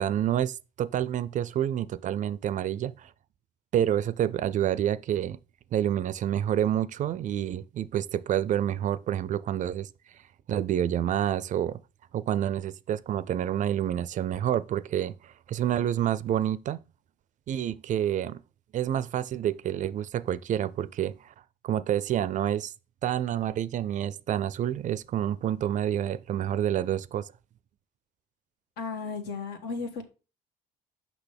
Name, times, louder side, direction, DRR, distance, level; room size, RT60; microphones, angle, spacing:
voice 1, 0.0-3.1 3.7-5.4 5.7-9.9 10.5-11.8 12.1-16.8 17.5-18.4 18.7-21.3 21.6-22.7 23.0-27.3, right 10 dB, 50° right, 0.4 m, -28 dB
voice 2, 28.8-30.0, left 4 dB, 75° left, 1.4 m, -34 dB
6.0 x 5.9 x 3.4 m
cardioid pair, 110°, 17 cm